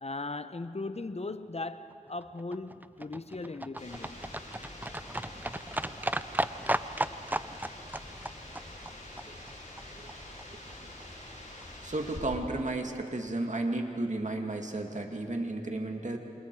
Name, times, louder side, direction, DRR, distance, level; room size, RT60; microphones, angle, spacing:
voice 1, 0.0-4.2, left 3 dB, 50° left, 0.9 m, -38 dB
Livestock farm animals working animals, 1.9-10.1 10.4-10.5 10.7-10.8 11.0-11.1 11.3-11.4 11.6-11.7 11.9-12.0 12.3-12.4 12.6-12.7, right 1 dB, 15° right, 0.6 m, -35 dB
sound 1, 3.8-12.2, left 1 dB, 65° left, 7.8 m, -46 dB
voice 2, 11.8-16.2, right 2 dB, 60° right, 2.3 m, -33 dB
28.5 x 27.5 x 4.8 m
wide cardioid pair, 45°, 14 cm